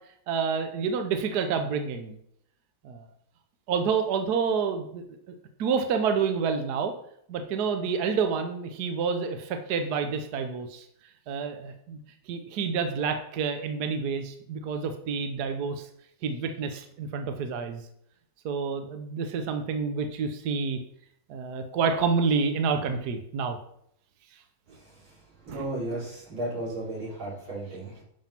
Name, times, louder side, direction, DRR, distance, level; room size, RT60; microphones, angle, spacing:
voice 1, 0.3-2.2 2.8-3.1 3.7-5.0 5.6-6.9 7.3-10.9 11.3-12.0 12.3-15.9 16.2-17.8 18.4-20.8 21.3-23.6 25.5-25.6, right 5 dB, 60° right, 6 dB, 1.3 m, -28 dB
voice 2, 24.7-25.2 25.5-28.0, right 2 dB, 80° right, -7 dB, 5.4 m, -35 dB
10.5 x 5.5 x 5.8 m, 0.71 s
omnidirectional pair, 2.2 m